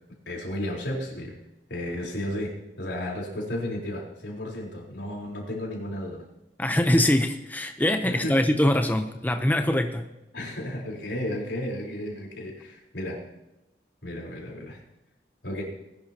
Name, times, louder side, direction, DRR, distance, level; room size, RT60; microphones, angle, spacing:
voice 1, 0.3-1.3 1.7-6.3 8.0-8.6 10.3-13.2 14.0-14.8 15.4-15.6, left 1 dB, 85° left, -1 dB, 4.0 m, -33 dB
voice 2, 6.6-10.1, left 1 dB, 10° left, 6 dB, 0.7 m, -23 dB
20.0 x 11.0 x 2.9 m, 0.94 s
head